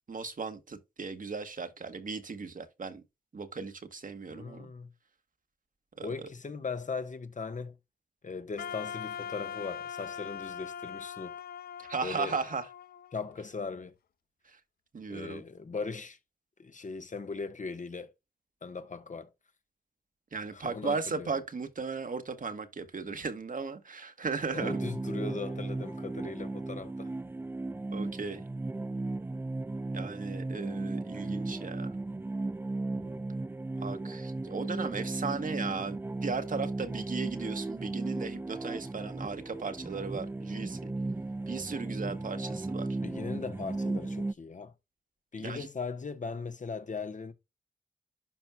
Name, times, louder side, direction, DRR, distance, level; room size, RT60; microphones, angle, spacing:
voice 1, 0.1-3.0 3.3-4.7 6.0-6.3 11.8-12.7 14.5-14.6 14.9-15.4 20.3-24.8 27.9-28.4 29.9-31.9 33.8-40.9 41.5-43.0 45.4-45.7, right 4 dB, 60° right, 1.5 m, -36 dB
voice 2, 4.3-4.9 6.0-7.8 8.2-11.3 12.0-12.4 13.1-13.9 15.1-16.2 16.6-18.1 18.6-19.3 20.5-21.3 24.5-27.1 32.9-33.3 43.0-44.7 45.3-47.3, left 4 dB, 55° left, 1.2 m, -39 dB
Wind instrument woodwind instrument, 8.6-13.6, left 8 dB, 85° left, 0.5 m, -41 dB
sound 1, 24.6-44.3, right 2 dB, 15° right, 0.3 m, -36 dB
11.5 x 4.5 x 2.3 m
cardioid pair, 45°, 15 cm